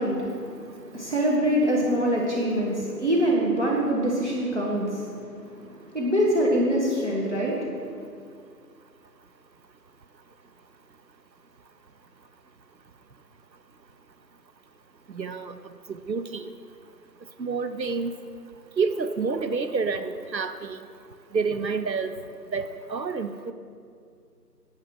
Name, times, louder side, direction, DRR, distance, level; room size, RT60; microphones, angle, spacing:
voice 1, 0.0-8.0, equal, 45° right, -3 dB, 1.6 m, -25 dB
voice 2, 15.1-15.6 15.9-16.5 17.4-18.1 18.8-20.8 21.3-22.1 22.5-23.5, right 4 dB, 85° right, 10 dB, 0.8 m, -28 dB
9.7 x 8.5 x 6.0 m, 2.3 s
figure-of-eight pair, 175°, 50 cm